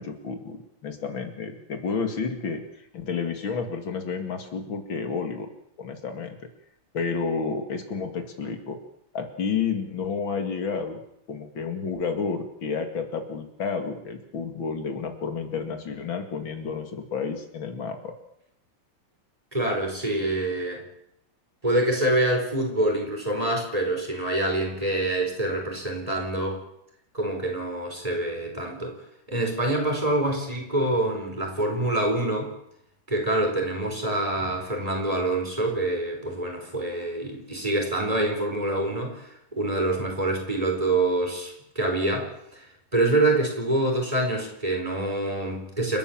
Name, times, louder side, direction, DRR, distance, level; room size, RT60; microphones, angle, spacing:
voice 1, 0.0-2.6 2.9-5.5 5.8-6.4 6.9-8.8 9.1-11.0 11.3-18.1, left 5 dB, 85° left, 6 dB, 3.0 m, -30 dB
voice 2, 19.5-20.8 21.6-26.6 27.1-29.0 29.3-32.5 33.1-42.6 42.9-46.0, right 2 dB, 15° right, 2 dB, 4.7 m, -26 dB
29.0 x 12.5 x 7.4 m, 0.77 s
omnidirectional pair, 2.1 m